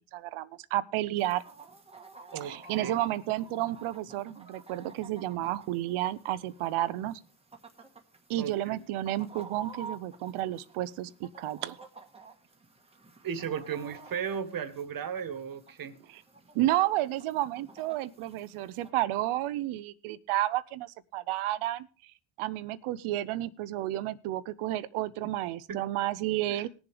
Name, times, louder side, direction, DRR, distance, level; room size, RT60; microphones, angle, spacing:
voice 1, 0.1-1.4 2.4-7.2 8.3-11.8 16.5-21.9 22.4-26.7, right 15 dB, 85° right, 16 dB, 0.8 m, -31 dB
Chicken rooster, 1.2-18.9, right 4 dB, 10° right, 1.4 m, -51 dB
voice 2, 2.3-2.9 8.4-8.8 13.2-15.9 25.7-25.8 26.5-26.6, right 7 dB, 45° right, 9 dB, 1.5 m, -35 dB
21.0 x 7.1 x 3.4 m, 0.37 s
cardioid pair, 130°, 48 cm